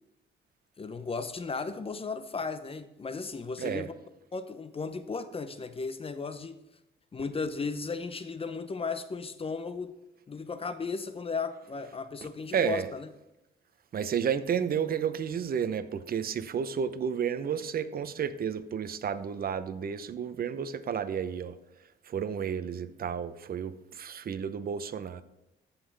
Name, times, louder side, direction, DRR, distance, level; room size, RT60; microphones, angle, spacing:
voice 1, 0.8-3.9 4.3-6.6 7.1-10.0 10.3-13.1, left 4 dB, 30° left, 0.7 m, -35 dB
voice 2, 12.5-12.9 13.9-21.6 22.0-25.2, right 7 dB, 50° right, 0.8 m, -31 dB
14.5 x 5.7 x 3.4 m
cardioid pair, 90°, 20 cm